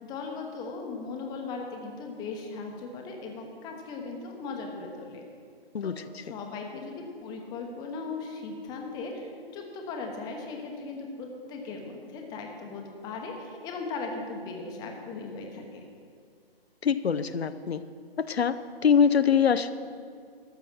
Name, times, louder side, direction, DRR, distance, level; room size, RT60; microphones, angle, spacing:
voice 1, 0.0-5.2 5.8-15.8, left 4 dB, 15° left, 2 dB, 0.9 m, -38 dB
voice 2, 5.7-6.2 16.8-17.8 18.2-19.7, left 7 dB, 85° left, 12 dB, 0.6 m, -24 dB
12.5 x 6.9 x 6.1 m, 2.2 s
figure-of-eight pair, 140°, 31 cm